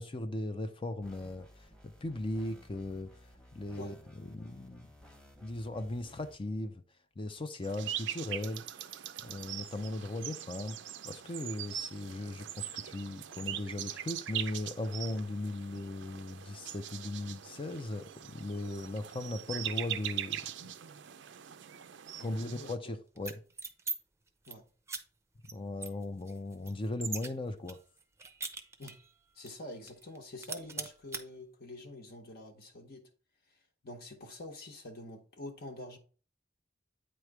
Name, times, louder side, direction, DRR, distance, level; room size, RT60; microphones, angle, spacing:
voice 1, 0.0-3.1 3.5-4.9 5.4-6.8 7.2-8.6 9.2-10.8 11.0-20.4 22.2-23.4 25.5-27.8, left 2 dB, 30° left, 0.5 m, -38 dB
sound 1, 1.0-6.4, left 1 dB, 5° left, 1.0 m, -57 dB
sound 2, 7.6-22.8, right 11 dB, 65° right, 0.5 m, -42 dB
voice 2, 22.2-22.9 24.5-24.6 28.8-28.9 29.3-33.1 33.8-36.0, left 1 dB, 55° left, 1.0 m, -46 dB
sound 3, 23.2-24.0 24.3-24.5 24.9-25.0 25.4-25.5 25.8-27.3 27.7-29.1 29.5-29.6 29.9-30.2 30.4-31.2, right 4 dB, 15° right, 0.6 m, -40 dB
8.8 x 3.1 x 4.6 m
head